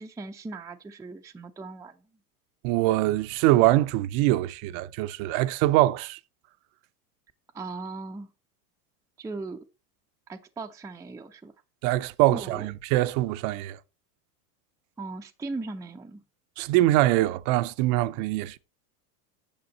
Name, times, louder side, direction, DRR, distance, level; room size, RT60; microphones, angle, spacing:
voice 1, 0.0-2.0 7.5-8.3 9.2-9.6 10.3-11.5 12.3-12.7 15.0-16.2, right 3 dB, 5° right, 0.5 m, -38 dB
voice 2, 2.6-6.2 11.8-13.8 16.6-18.6, right 16 dB, 60° right, 0.7 m, -23 dB
8.8 x 6.9 x 3.9 m
hypercardioid pair, 95°, 46 cm